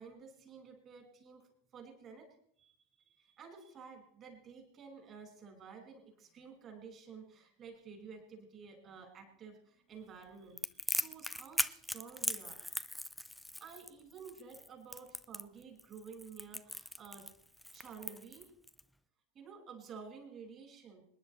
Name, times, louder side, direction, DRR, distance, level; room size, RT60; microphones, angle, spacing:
voice 1, 0.0-2.3 2.6-2.7 3.1-12.6 13.6-17.3 17.7-18.5 19.3-21.1, right 5 dB, 30° right, 3 dB, 5.0 m, -52 dB
Crackle, 10.6-18.8, left 1 dB, ahead, 0.5 m, -39 dB
26.5 x 10.5 x 3.2 m, 0.64 s
figure-of-eight pair, 90°, 0 cm